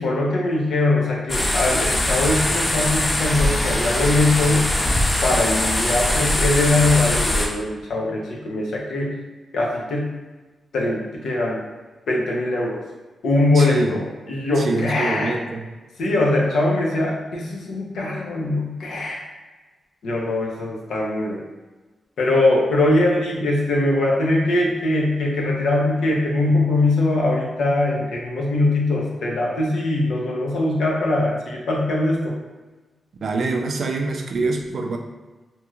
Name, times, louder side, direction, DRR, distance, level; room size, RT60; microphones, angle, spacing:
voice 1, 0.0-4.7 5.2-9.2 9.5-10.2 10.7-11.6 12.1-12.8 13.2-15.4 16.0-19.2 20.0-21.5 22.2-32.4, left 2 dB, 85° left, -2 dB, 0.7 m, -21 dB
sound 1, 1.3-7.5, left 1 dB, 20° left, 0.4 m, -22 dB
voice 2, 13.5-14.0 14.6-15.6 33.2-35.0, right 3 dB, 55° right, 3 dB, 0.3 m, -25 dB
2.8 x 2.3 x 3.0 m, 1.2 s
wide cardioid pair, 140°, 0 cm